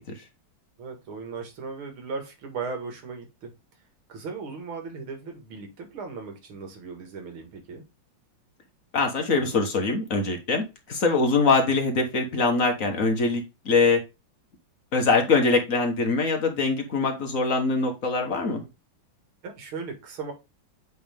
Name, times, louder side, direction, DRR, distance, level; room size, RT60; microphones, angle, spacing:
voice 1, 0.8-3.5 4.1-7.9 19.4-20.3, right 4 dB, 75° right, 2.6 m, -37 dB
voice 2, 8.9-14.0 14.9-18.6, left 3 dB, 45° left, 1.5 m, -23 dB
7.8 x 3.6 x 3.4 m
omnidirectional pair, 2.3 m